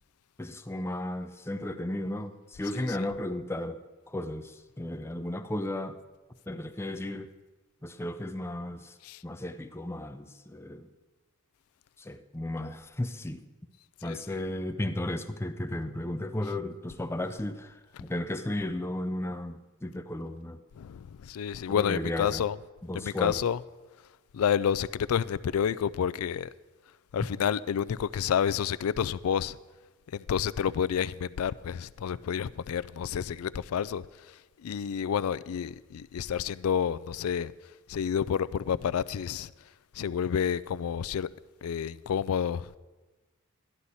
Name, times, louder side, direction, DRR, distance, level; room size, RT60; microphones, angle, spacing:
voice 1, 0.4-3.8 4.1-6.0 6.5-7.3 7.8-8.9 9.2-10.9 12.0-13.4 14.0-20.6 21.8-22.4 22.9-23.3, left 1 dB, 10° left, 0.5 m, -34 dB
voice 2, 2.6-3.1 9.0-9.2 14.0-14.4 16.4-16.5 17.9-18.2 20.7-22.6 22.9-23.6 24.0-26.5 26.8-29.6 30.1-41.3 41.6-42.8, left 8 dB, 85° left, 0.4 m, -30 dB
13.0 x 11.5 x 4.1 m
head